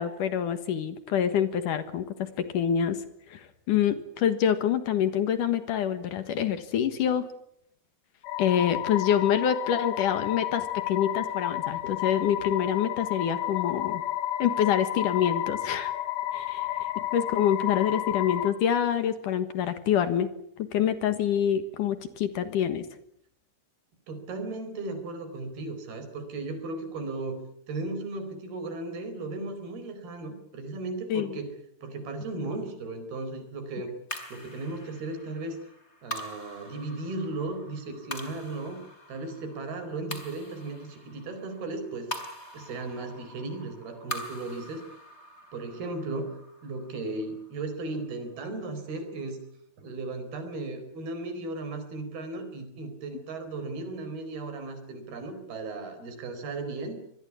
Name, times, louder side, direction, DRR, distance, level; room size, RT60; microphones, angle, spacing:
voice 1, 0.0-3.0 3.3-7.3 8.4-14.0 14.4-15.9 16.3-16.7 17.1-20.3 20.6-22.9 31.1-31.4, left 9 dB, 65° left, 11 dB, 2.8 m, -26 dB
sound 1, 8.2-18.5, left 13 dB, 80° left, 3.2 m, -31 dB
voice 2, 24.1-27.4 27.7-31.5 31.8-33.9 34.3-35.6 36.0-38.8 39.1-42.1 42.5-44.8 45.5-46.3 46.6-49.4 49.8-57.0, right 2 dB, 80° right, 9 dB, 6.2 m, -36 dB
sound 2, 34.1-48.6, equal, 20° left, 3.4 m, -44 dB
25.5 x 20.5 x 8.5 m, 0.73 s
omnidirectional pair, 4.3 m